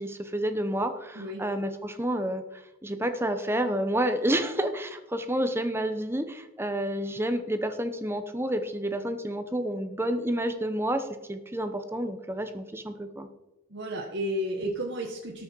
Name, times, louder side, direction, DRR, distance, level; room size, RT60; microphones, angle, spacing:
voice 1, 0.0-13.3, right 1 dB, 10° right, 8 dB, 0.9 m, -29 dB
voice 2, 13.7-15.4, equal, 50° right, -1 dB, 1.5 m, -32 dB
18.5 x 6.3 x 4.7 m, 0.99 s
head